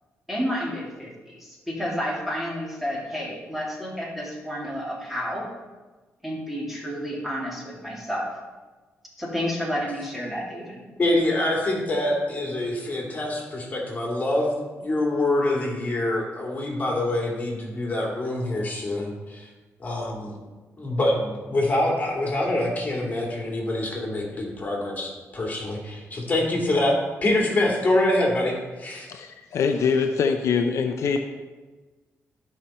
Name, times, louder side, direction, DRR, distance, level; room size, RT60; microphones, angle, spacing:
voice 1, 0.3-5.5 6.2-8.3 9.2-10.8, equal, 5° right, -4 dB, 2.7 m, -30 dB
voice 2, 11.0-14.5 14.8-19.5 19.8-20.3 20.8-29.1, left 1 dB, 30° left, -2 dB, 2.8 m, -25 dB
voice 3, 29.1-31.2, left 5 dB, 75° left, 6 dB, 0.6 m, -23 dB
12.0 x 5.6 x 4.4 m, 1.3 s
cardioid pair, 110°, 5 cm